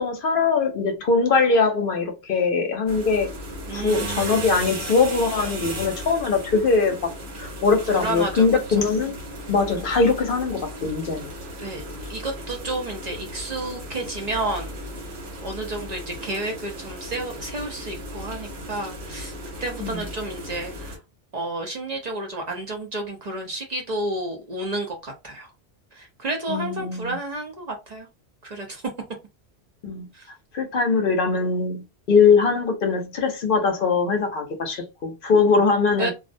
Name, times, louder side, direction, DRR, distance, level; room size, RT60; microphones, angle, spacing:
voice 1, 0.0-3.3 3.7-7.1 7.4-9.1 9.5-11.3 19.8-20.0 26.5-27.2 29.8-30.1 30.5-36.1, left 4 dB, 65° left, 0.7 m, -21 dB
sound 1, 2.9-21.0, equal, 80° right, 1.1 m, -36 dB
voice 2, 3.7-4.4 7.9-8.8 11.6-11.8 12.1-14.8 15.4-19.3 19.6-21.0 21.3-25.5 25.9-28.1 28.4-28.9 30.1-30.3 36.0-36.1, right 2 dB, 45° right, 0.6 m, -31 dB
2.3 x 2.1 x 2.5 m
omnidirectional pair, 1.1 m